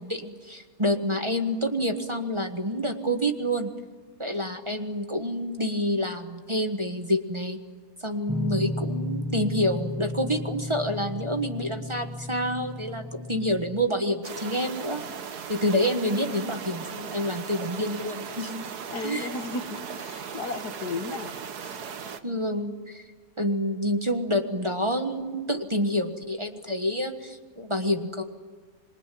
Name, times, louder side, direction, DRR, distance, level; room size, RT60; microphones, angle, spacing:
voice 1, 0.0-3.7 4.2-7.6 8.0-15.0 15.5-18.7 19.0-19.3 22.2-23.0 23.4-28.2, equal, 20° right, 5 dB, 1.5 m, -28 dB
sound 1, 8.3-13.9, left 1 dB, ahead, 0.6 m, -33 dB
sound 2, 14.2-22.2, right 7 dB, 80° right, 1.7 m, -38 dB
voice 2, 18.9-21.3 21.6-21.8, left 3 dB, 80° left, 8 dB, 2.1 m, -34 dB
26.5 x 22.5 x 9.4 m, 1.4 s
omnidirectional pair, 1.7 m